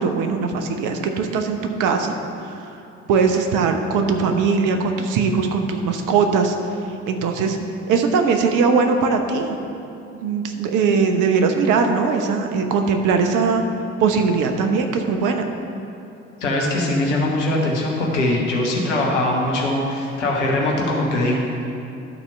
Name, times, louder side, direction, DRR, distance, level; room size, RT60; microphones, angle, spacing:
voice 1, 0.0-2.1 2.6-2.7 3.1-6.6 7.1-7.6 7.9-9.6 10.1-13.6 14.0-15.5, right 5 dB, 60° right, 5 dB, 1.0 m, -20 dB
voice 2, 16.4-21.4, left 1 dB, 85° left, -2 dB, 1.2 m, -21 dB
11.5 x 4.3 x 5.6 m, 2.8 s
figure-of-eight pair, 45°, 35 cm